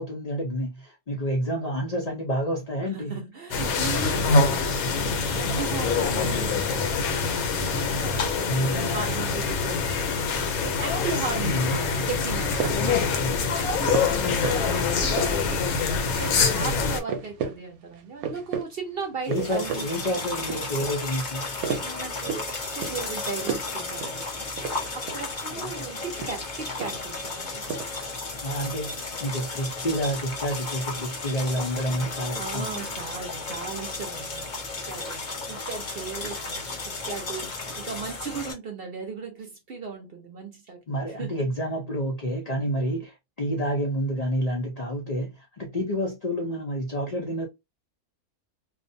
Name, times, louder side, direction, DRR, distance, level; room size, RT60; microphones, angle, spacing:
voice 1, 0.0-3.2 8.4-9.0 11.3-12.1 12.7-14.2 19.3-21.5 25.5-26.0 28.4-32.9 40.9-47.5, equal, 70° left, 0.3 m, -29 dB
voice 2, 2.9-19.9 21.8-28.0 31.7-41.5, right 5 dB, 60° right, 0.7 m, -37 dB
sound 1, 3.5-17.0, left 4 dB, 85° left, 1.1 m, -25 dB
sound 2, 12.4-13.0 13.9-14.7 15.0-15.7 16.1-16.4 16.7-16.8 17.1-17.6 17.9-18.7 19.0-19.9 20.2-20.9 21.3-22.5 22.8-23.1 23.4-23.7 24.0-24.2 24.5-25.3 26.0-27.2 27.4-27.8, right 6 dB, 85° right, 1.0 m, -33 dB
sound 3, 19.2-38.5, left 3 dB, 40° left, 0.7 m, -34 dB
2.5 x 2.1 x 2.6 m
omnidirectional pair, 1.5 m